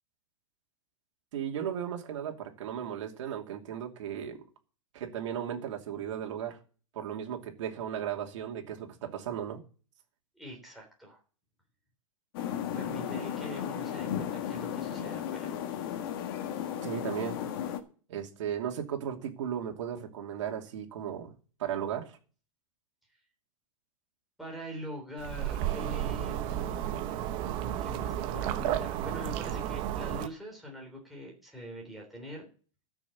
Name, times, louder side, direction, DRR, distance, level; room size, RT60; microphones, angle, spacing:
voice 1, 1.3-4.4 4.9-6.6 6.9-9.6 16.8-17.4 18.1-21.3 21.6-22.2, right 9 dB, 60° right, 2.7 m, -36 dB
voice 2, 10.4-11.2 12.8-15.6 24.4-27.3 27.8-32.5, equal, ahead, 3.8 m, -43 dB
sound 1, 12.3-17.8, left 9 dB, 45° left, 1.7 m, -35 dB
sound 2, 25.2-30.3, right 11 dB, 30° right, 1.0 m, -32 dB
13.5 x 6.3 x 7.2 m
supercardioid pair, 165°, 17 cm